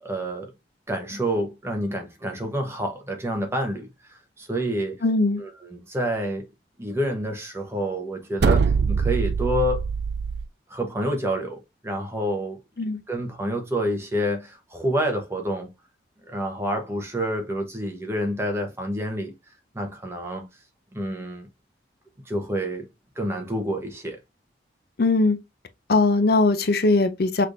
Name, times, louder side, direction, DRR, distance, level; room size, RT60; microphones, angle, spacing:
voice 1, 0.0-0.5 0.9-3.9 4.4-5.0 5.4-6.4 6.8-9.8 10.7-11.6 11.8-12.6 13.1-15.7 16.3-19.3 19.7-20.5 20.9-21.5 22.3-22.9 23.2-24.2, equal, 15° right, 1.0 m, -28 dB
voice 2, 5.0-5.4 12.8-13.0 25.0-25.4 25.9-27.5, left 3 dB, 55° left, 0.5 m, -20 dB
sound 1, 8.4-10.5, right 5 dB, 60° right, 0.4 m, -23 dB
5.9 x 3.2 x 2.6 m
head